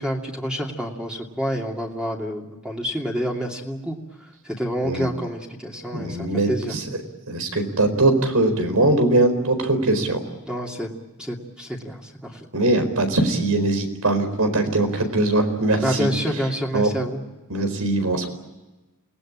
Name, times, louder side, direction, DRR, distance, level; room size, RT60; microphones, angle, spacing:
voice 1, 0.0-4.0 4.4-6.7 10.5-10.9 11.2-12.5 15.8-17.2, equal, 5° right, -1 dB, 2.6 m, -28 dB
voice 2, 5.9-6.8 7.3-10.2 12.5-16.1 16.7-16.9 17.5-18.3, right 2 dB, 80° right, 8 dB, 4.6 m, -21 dB
28.5 x 19.5 x 8.9 m, 1.1 s
head